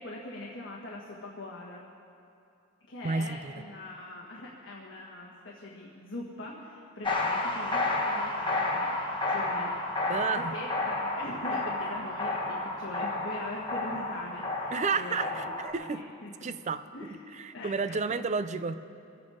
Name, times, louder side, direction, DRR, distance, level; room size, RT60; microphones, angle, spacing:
voice 1, 0.0-1.8 2.9-9.7 10.0-15.4 15.8-16.3 16.9-17.2 17.5-18.2, left 2 dB, 65° left, -3 dB, 1.5 m, -42 dB
voice 2, 3.0-3.5 10.1-10.5 14.7-16.0 16.4-16.9 17.4-18.8, right 4 dB, 35° right, 12 dB, 0.4 m, -31 dB
sound 1, 7.0-15.7, left 2 dB, 25° left, 1.3 m, -31 dB
23.0 x 8.6 x 4.9 m, 2.5 s
head